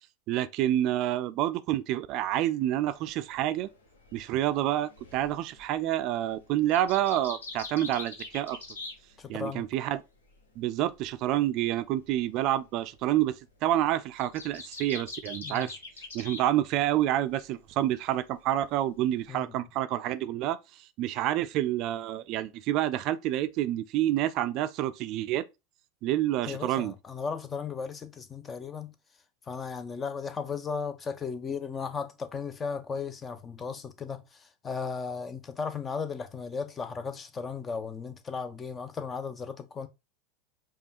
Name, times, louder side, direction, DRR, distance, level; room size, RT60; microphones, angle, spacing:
voice 1, 0.3-3.7 4.1-8.6 9.3-10.0 10.6-13.3 13.6-15.7 16.1-25.5 26.0-26.9, right 13 dB, 55° right, 0.3 m, -28 dB
sound 1, 2.9-9.6 9.9-16.5 16.7-17.5 17.8-19.3, left 3 dB, 85° left, 0.9 m, -45 dB
voice 2, 9.2-9.7 15.4-15.7 19.3-19.6 26.5-28.9 29.5-39.9, left 5 dB, 25° left, 0.6 m, -36 dB
5.1 x 2.4 x 2.8 m
hypercardioid pair, 90°, 0 cm